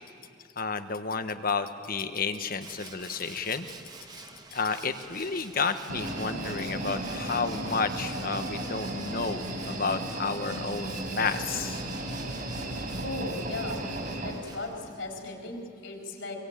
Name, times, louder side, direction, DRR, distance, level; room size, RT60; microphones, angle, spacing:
voice 1, 0.6-3.7 4.5-11.8, left 4 dB, 50° left, 9 dB, 1.2 m, -31 dB
Tools, 2.6-15.1, right 3 dB, 20° right, 1.7 m, -48 dB
sound 1, 5.9-14.3, right 1 dB, 50° right, 4.9 m, -35 dB
voice 2, 12.5-13.9 14.2-16.4, left 2 dB, 70° left, 1 dB, 4.4 m, -38 dB
23.5 x 23.5 x 8.9 m, 2.5 s
head